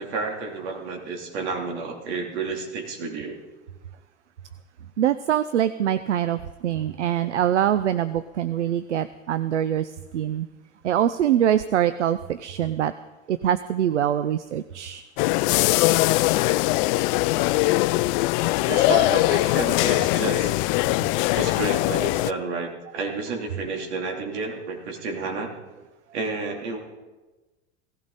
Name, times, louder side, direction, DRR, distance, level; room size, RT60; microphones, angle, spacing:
voice 1, 0.0-3.4 18.7-20.5 21.3-25.5 26.1-26.8, right 4 dB, 70° right, 1 dB, 3.1 m, -30 dB
voice 2, 5.0-10.5 10.8-12.9 13.3-15.0, right 10 dB, 90° right, 13 dB, 0.6 m, -24 dB
sound 1, 15.2-22.3, left 19 dB, 55° left, 0.5 m, -21 dB
17.5 x 15.0 x 4.1 m, 1.2 s
hypercardioid pair, 85°, 34 cm